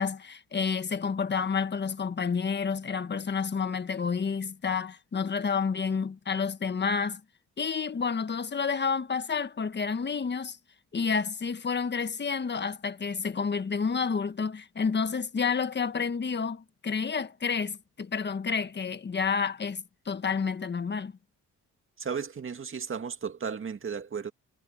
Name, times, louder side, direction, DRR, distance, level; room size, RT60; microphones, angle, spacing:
voice 1, 0.0-7.2 7.6-10.6 10.9-21.1, left 5 dB, 35° left, 1.4 m, -30 dB
voice 2, 22.0-24.3, right 6 dB, 40° right, 2.1 m, -34 dB
cardioid pair, 75°, 30 cm